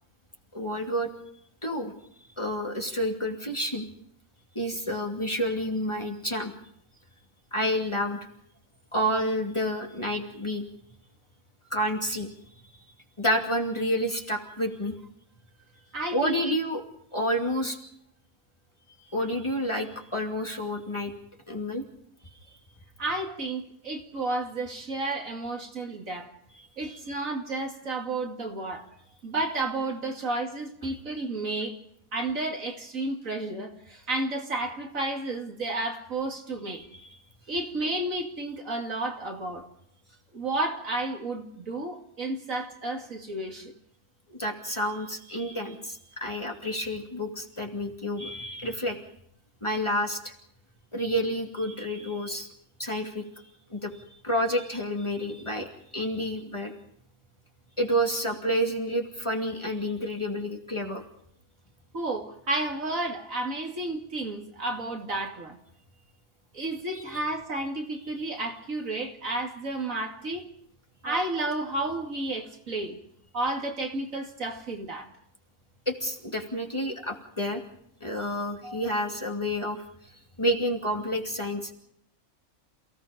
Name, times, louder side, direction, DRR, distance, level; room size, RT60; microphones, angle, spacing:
voice 1, 0.5-1.1 1.6-1.9 2.4-3.9 4.5-6.5 7.5-8.2 8.9-10.6 11.7-12.3 12.6-12.7 13.2-14.9 16.1-16.8 17.1-17.8 19.1-21.1 21.5-21.8 26.9-27.2 44.3-49.0 49.6-50.3 50.9-52.5 52.8-53.2 53.7-56.7 57.8-61.0 66.9-67.2 75.9-77.6 78.0-79.8 80.4-81.7, equal, 20° left, 2.6 m, -29 dB
voice 2, 15.9-16.6 23.0-26.3 26.8-28.9 29.2-31.8 32.1-36.8 37.5-39.7 40.3-43.7 61.9-65.6 66.5-70.5 71.0-73.0 73.3-75.1 78.6-79.0, right 2 dB, 60° right, 3.0 m, -32 dB
28.5 x 17.5 x 5.2 m
omnidirectional pair, 1.6 m